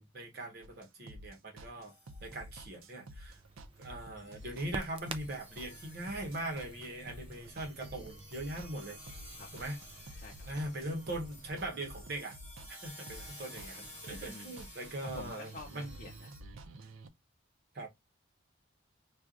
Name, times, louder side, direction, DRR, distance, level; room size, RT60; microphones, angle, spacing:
voice 1, 0.0-1.9 2.2-3.4 3.8-9.0 9.5-9.8 10.1-12.4 12.7-15.9 17.7-17.9, right 1 dB, 50° right, 1.2 m, -41 dB
sound 1, 0.6-17.1, right 1 dB, 90° right, 0.5 m, -51 dB
sound 2, 1.9-2.7 3.0-3.1 3.4-3.8 4.2-16.4, left 1 dB, 10° left, 1.5 m, -53 dB
Crackle, 3.3-11.5, right 3 dB, 25° right, 0.4 m, -50 dB
voice 2, 15.0-16.3, left 3 dB, 40° left, 0.6 m, -48 dB
4.5 x 2.4 x 2.4 m
head